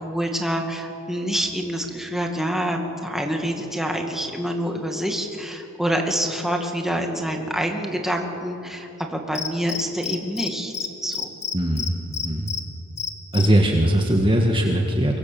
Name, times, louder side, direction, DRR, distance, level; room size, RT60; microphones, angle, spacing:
voice 1, 0.0-10.7 11.0-11.3, equal, ahead, 2 dB, 2.3 m, -26 dB
Cricket, 9.4-10.5 10.7-10.9 11.1-12.6 13.0-13.5, left 7 dB, 30° left, 1.7 m, -28 dB
voice 2, 11.5-12.0 12.2-12.5 13.3-15.2, right 1 dB, 25° right, 2 dB, 1.7 m, -20 dB
23.5 x 23.5 x 7.1 m, 2.8 s
head